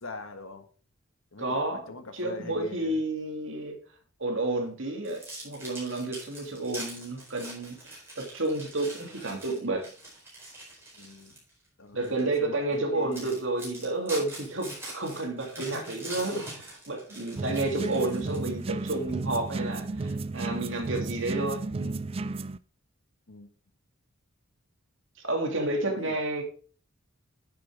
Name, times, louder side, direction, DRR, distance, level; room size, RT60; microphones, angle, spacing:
voice 1, 0.0-0.6 1.3-2.9 11.0-11.4 11.8-13.4 15.6-15.9 23.3-23.5 25.9-26.2, left 2 dB, 70° left, 7 dB, 1.6 m, -43 dB
voice 2, 1.4-1.9 2.1-3.8 4.2-9.8 11.9-22.1 25.2-26.4, right 2 dB, 60° right, 2 dB, 2.6 m, -31 dB
sound 1, 5.0-11.5 12.0-12.2 12.7-12.8 13.1-18.6, right 1 dB, 10° right, 4.6 m, -43 dB
sound 2, 17.4-22.6, right 3 dB, 25° right, 0.3 m, -33 dB
9.9 x 7.6 x 3.5 m, 0.40 s
head